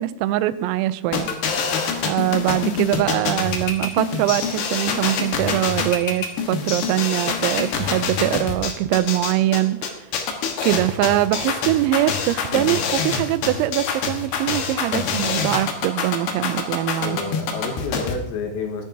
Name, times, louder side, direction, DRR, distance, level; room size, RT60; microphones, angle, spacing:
voice 1, 0.0-1.3 2.0-9.8 10.6-17.2, right 14 dB, 85° right, 14 dB, 3.3 m, -22 dB
sound 1, 1.1-18.1, left 6 dB, 65° left, 2.8 m, -25 dB
voice 2, 17.0-18.9, left 4 dB, 90° left, 4 dB, 4.2 m, -29 dB
20.0 x 10.0 x 2.8 m, 0.82 s
omnidirectional pair, 6.0 m